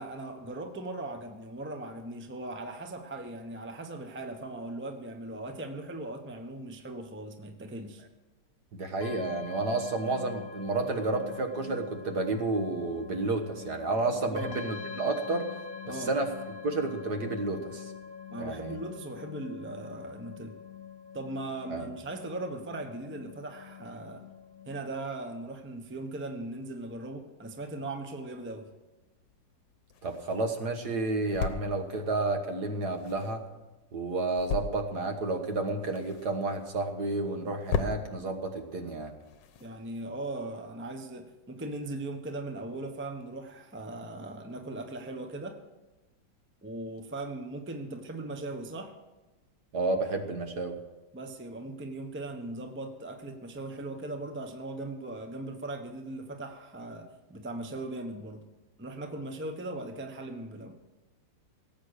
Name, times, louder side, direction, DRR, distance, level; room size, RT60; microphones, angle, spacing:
voice 1, 0.0-8.0 14.3-14.5 15.9-16.1 18.3-20.6 21.1-24.3 24.7-28.7 39.6-45.6 46.6-48.9 51.1-58.4 58.8-60.8, right 2 dB, 10° right, 6 dB, 0.8 m, -39 dB
voice 2, 8.7-15.5 15.9-16.3 16.6-17.9 18.4-18.8 21.7-21.9 30.0-33.4 33.9-39.2 49.7-50.8, right 3 dB, 60° right, 6 dB, 1.8 m, -31 dB
sound 1, 9.0-24.8, left 7 dB, 55° left, 1.2 m, -44 dB
sound 2, 29.2-40.4, left 6 dB, 75° left, 1.5 m, -40 dB
18.0 x 8.4 x 6.5 m, 1.1 s
omnidirectional pair, 2.0 m